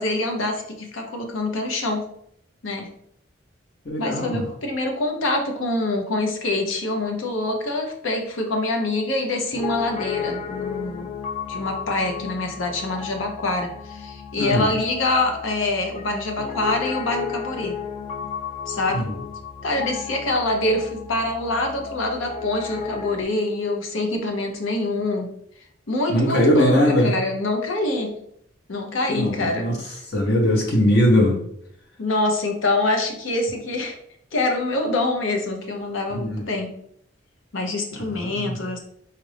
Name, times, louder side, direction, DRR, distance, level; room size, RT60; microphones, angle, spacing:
voice 1, 0.0-2.1 2.6-2.9 4.0-11.1 11.5-17.8 18.7-19.1 19.6-25.3 25.9-28.1 28.7-29.7 32.0-34.0 34.3-36.7 37.5-38.8, left 2 dB, 90° left, 3 dB, 0.8 m, -25 dB
voice 2, 3.8-4.4 14.4-14.7 18.9-19.1 26.1-27.1 29.1-29.7 30.1-31.4 36.1-36.4 37.9-38.5, equal, 55° left, -1 dB, 0.8 m, -20 dB
Piano, 9.5-23.2, left 7 dB, 35° left, 0.3 m, -33 dB
4.3 x 2.5 x 3.3 m, 0.72 s
head